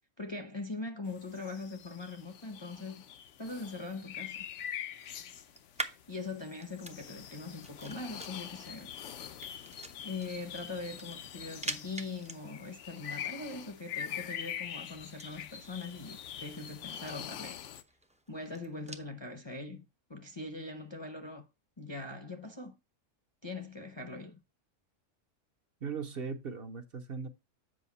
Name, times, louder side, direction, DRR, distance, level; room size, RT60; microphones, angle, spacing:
voice 1, 0.2-3.0 3.4-4.5 5.8-8.9 10.0-17.7 18.3-21.5 21.8-22.7 23.4-24.4, left 3 dB, 25° left, 0.7 m, -42 dB
sound 1, 1.1-17.8, left 9 dB, 70° left, 0.9 m, -44 dB
sound 2, 3.3-19.1, right 2 dB, 10° right, 0.4 m, -48 dB
voice 2, 25.8-27.3, right 5 dB, 55° right, 0.9 m, -38 dB
7.7 x 5.3 x 4.1 m
omnidirectional pair, 1.3 m